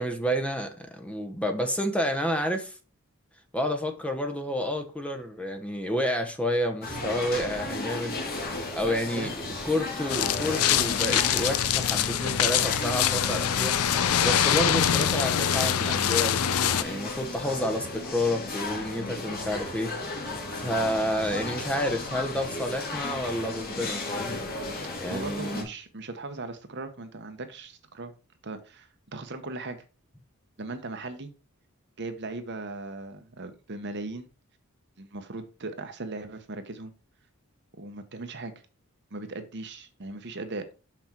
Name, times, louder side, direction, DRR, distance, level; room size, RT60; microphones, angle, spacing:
voice 1, 0.0-2.8 3.5-8.2 8.7-9.3 9.6-13.7 14.2-19.9 20.5-24.4 25.0-25.7, equal, 5° left, 0.8 m, -30 dB
sound 1, 6.8-25.6, left 2 dB, 45° left, 2.1 m, -35 dB
voice 2, 9.2-9.6 10.1-10.3 25.1-28.1 28.4-29.8 30.6-31.3 32.0-34.3 35.0-36.9 37.8-38.5 39.1-40.7, right 2 dB, 50° right, 1.0 m, -38 dB
sound 2, 10.1-16.8, left 10 dB, 85° left, 0.5 m, -24 dB
6.0 x 6.0 x 4.4 m
head